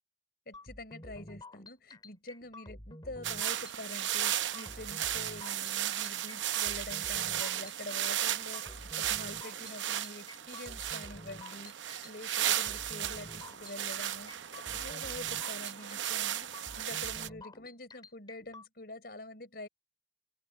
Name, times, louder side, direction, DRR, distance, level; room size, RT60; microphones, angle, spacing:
voice 1, 0.5-19.7, left 2 dB, 55° left, 4.7 m, -46 dB
sound 1, 0.5-18.7, left 1 dB, 25° left, 3.1 m, -50 dB
sound 2, 3.2-17.3, right 11 dB, 80° right, 0.7 m, -35 dB
open air
head